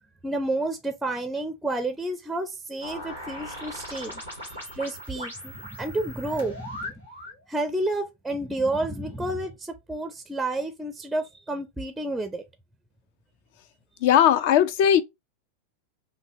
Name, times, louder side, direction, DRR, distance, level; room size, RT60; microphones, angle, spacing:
voice 1, 0.2-6.9 7.5-12.4, right 2 dB, 5° right, 0.5 m, -30 dB
sound 1, 2.8-7.4, left 1 dB, 85° left, 1.7 m, -39 dB
voice 2, 14.0-15.0, left 10 dB, 50° left, 0.4 m, -18 dB
5.3 x 2.2 x 2.7 m
figure-of-eight pair, 90°, 0 cm